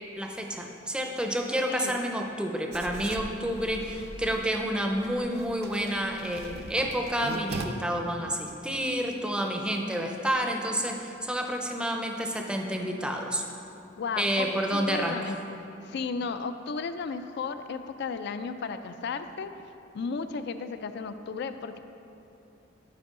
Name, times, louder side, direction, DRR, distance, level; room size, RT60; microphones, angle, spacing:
voice 1, 0.2-13.4 14.2-15.2, equal, 5° right, 2 dB, 0.5 m, -29 dB
voice 2, 1.6-2.0 14.0-19.5 19.9-21.8, left 5 dB, 60° left, 10 dB, 0.4 m, -34 dB
Writing, 2.7-7.6, right 3 dB, 60° right, 0.5 m, -41 dB
11.5 x 4.7 x 3.7 m, 2.9 s
head